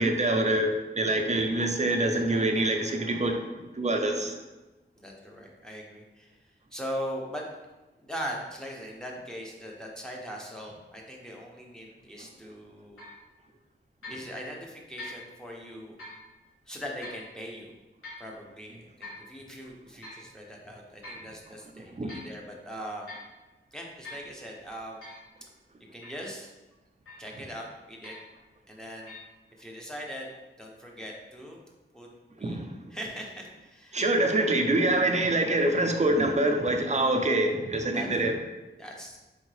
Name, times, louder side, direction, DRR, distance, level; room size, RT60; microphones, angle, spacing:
voice 1, 0.0-3.4 3.7-4.4 21.9-22.1 32.4-32.8 33.9-38.4, right 1 dB, 35° right, 4 dB, 0.6 m, -25 dB
voice 2, 4.9-7.4 8.0-13.0 14.1-16.0 16.7-17.7 18.2-23.1 23.7-25.1 25.9-26.5 27.2-28.1 28.7-29.1 29.6-30.3 30.6-31.6 31.9-32.1 32.4-32.6 32.9-34.0 37.9-38.1 38.8-39.2, equal, 5° left, -2 dB, 0.9 m, -40 dB
sound 1, 13.0-13.2 14.0-14.3 15.0-15.3 16.0-16.2 17.0-17.3 18.0-18.3 19.0-19.3 20.0-20.3 21.0-21.3 21.8-22.3 23.1-23.3 24.0-24.3 25.0-25.3 26.0-26.3 27.1-27.4 28.0-28.4 29.0-29.2, left 2 dB, 80° left, 1.5 m, -44 dB
3.9 x 3.5 x 3.2 m, 1.1 s
wide cardioid pair, 60°, 21 cm